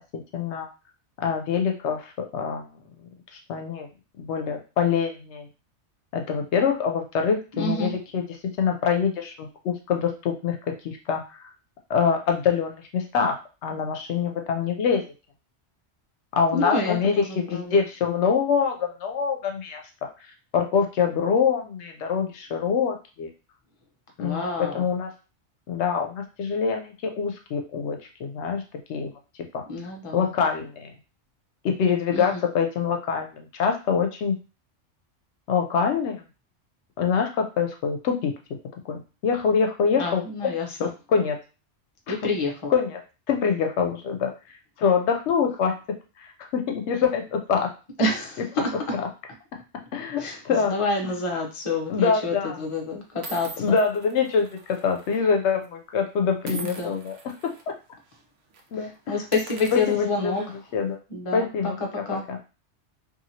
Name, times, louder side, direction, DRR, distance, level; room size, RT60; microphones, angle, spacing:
voice 1, 0.1-0.7 1.2-2.6 3.5-3.9 4.2-5.5 6.1-8.2 8.6-10.6 10.8-11.4 11.9-15.1 16.3-19.8 20.5-23.3 24.2-25.1 25.7-28.6 28.9-29.1 29.5-29.6 30.1-30.9 31.6-34.4 35.5-36.2 37.0-38.3 38.8-40.5 40.8-41.4 42.1-42.2 42.7-43.0 43.3-44.3 44.8-45.7 46.2-46.3 46.5-47.7 48.9-49.1 49.9-50.7 51.0-51.1 51.9-52.6 53.6-57.2 57.7-57.8 58.7-59.1 59.7-60.3 60.7-61.0 61.3-61.8 62.1-62.4, left 6 dB, 80° left, 4 dB, 0.9 m, -25 dB
voice 2, 7.5-7.9 16.5-17.8 24.2-24.8 29.7-30.3 32.1-32.4 39.9-40.9 42.1-42.7 48.0-48.7 50.2-53.7 56.5-56.9 58.7-60.4 61.1-61.7 62.1-62.2, left 3 dB, 35° left, 1 dB, 0.7 m, -28 dB
sound 1, 51.6-51.9 52.6-52.7 53.2-55.2 55.5-55.7 56.4-57.6 58.0-58.2 58.5-58.7 59.2-60.7, right 4 dB, 90° right, 1.0 m, -43 dB
2.9 x 2.6 x 2.7 m, 0.31 s
omnidirectional pair, 1.2 m